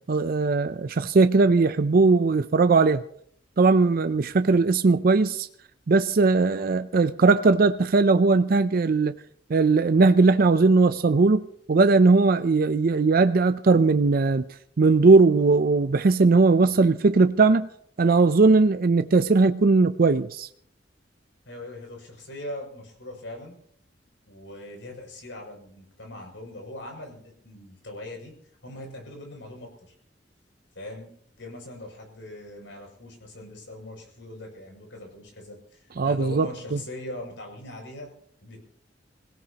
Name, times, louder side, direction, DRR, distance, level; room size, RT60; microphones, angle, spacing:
voice 1, 0.1-3.0 3.6-5.5 5.9-9.1 9.5-14.5 14.8-17.7 18.0-20.5 36.0-36.5, right 3 dB, 55° right, 0.5 m, -19 dB
voice 2, 21.4-23.6 24.2-28.3 28.6-29.9 30.7-38.1 38.4-38.6, left 1 dB, 85° left, 6.7 m, -41 dB
25.5 x 17.0 x 2.9 m
head